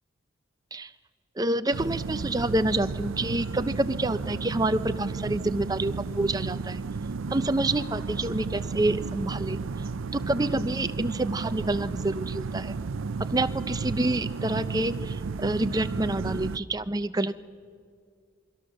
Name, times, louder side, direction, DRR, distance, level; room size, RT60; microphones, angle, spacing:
voice 1, 1.4-6.8 7.3-9.6 10.1-12.7 13.2-17.3, right 2 dB, 20° right, 11 dB, 0.6 m, -28 dB
sound 1, 1.7-16.6, right 4 dB, 75° right, 0.5 m, -33 dB
27.0 x 23.0 x 6.5 m, 2.2 s
head